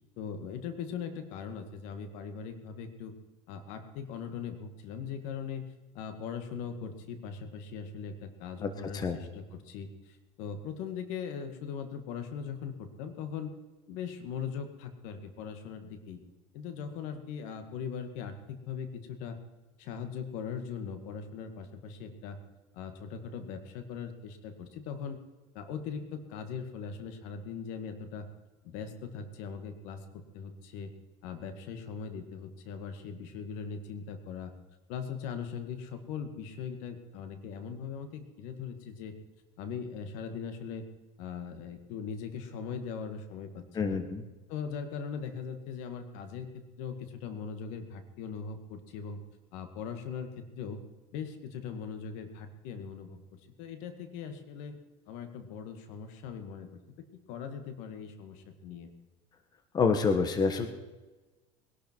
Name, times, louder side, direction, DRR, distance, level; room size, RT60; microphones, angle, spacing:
voice 1, 0.2-3.1 3.5-13.5 13.9-16.2 16.5-19.4 19.8-22.4 22.7-25.2 25.5-28.3 28.6-30.1 30.3-30.9 31.2-34.5 34.9-39.1 39.6-40.9 41.2-44.0 44.5-49.2 49.5-50.8 51.1-54.8 55.1-56.8 57.3-58.9, left 6 dB, 75° left, 8 dB, 2.1 m, -40 dB
voice 2, 8.6-9.2 43.7-44.2 59.7-60.7, left 5 dB, 30° left, 8 dB, 1.5 m, -27 dB
21.0 x 11.5 x 4.7 m, 1.2 s
supercardioid pair, 115°, 13 cm